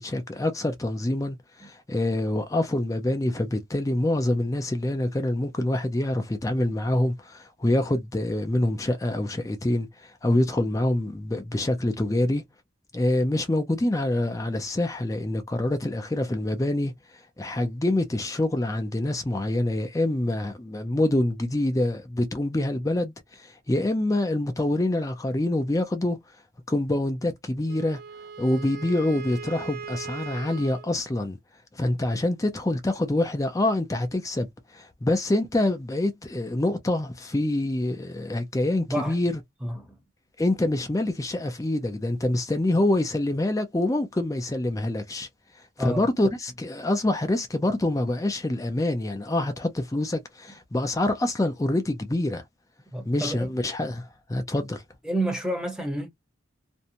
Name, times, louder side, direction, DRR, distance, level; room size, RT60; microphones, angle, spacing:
voice 1, 0.0-12.4 12.9-16.9 17.4-26.2 26.7-28.0 28.4-31.4 31.7-39.4 40.4-45.3 45.8-52.4 53.1-54.8, left 1 dB, 15° left, 0.4 m, -26 dB
Wind instrument woodwind instrument, 27.7-30.9, right 5 dB, 50° right, 0.4 m, -39 dB
voice 2, 39.6-40.0 45.8-46.0 52.9-53.5 55.0-56.1, right 1 dB, 5° right, 0.8 m, -29 dB
2.6 x 2.2 x 2.8 m
head